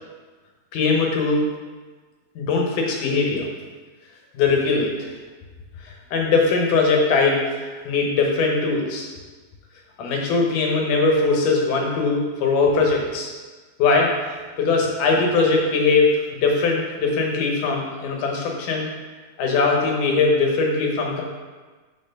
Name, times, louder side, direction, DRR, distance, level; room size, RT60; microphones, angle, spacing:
voice 1, 0.7-1.4 2.4-3.5 4.3-5.1 6.1-7.5 7.9-9.1 10.0-13.3 13.8-14.1 14.6-18.9 19.4-21.2, left 4 dB, 85° left, 0 dB, 2.5 m, -20 dB
5.7 x 4.3 x 5.2 m, 1.4 s
omnidirectional pair, 3.6 m